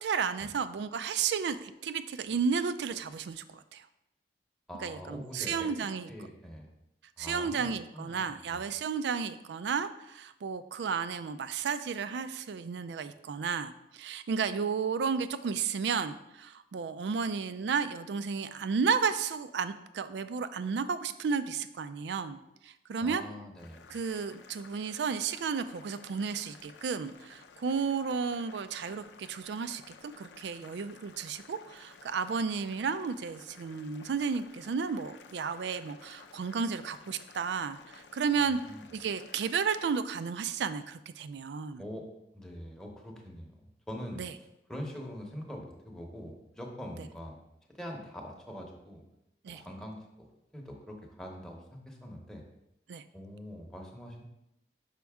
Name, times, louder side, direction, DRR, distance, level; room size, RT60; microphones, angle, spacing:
voice 1, 0.0-3.9 4.8-6.1 7.2-23.2 23.9-38.6 38.9-41.8 44.2-44.3 49.4-49.6 52.9-53.0, right 6 dB, 75° right, 12 dB, 0.4 m, -33 dB
voice 2, 4.7-6.7 7.2-8.6 23.0-23.9 38.4-38.8 41.8-42.1 42.3-44.2 44.7-47.4 47.7-49.0 49.5-50.3 50.5-52.4 53.1-54.2, equal, 5° left, 0 dB, 0.8 m, -44 dB
Boiling, 23.6-40.0, left 5 dB, 80° left, 0.5 m, -55 dB
5.8 x 5.2 x 3.5 m, 0.87 s
head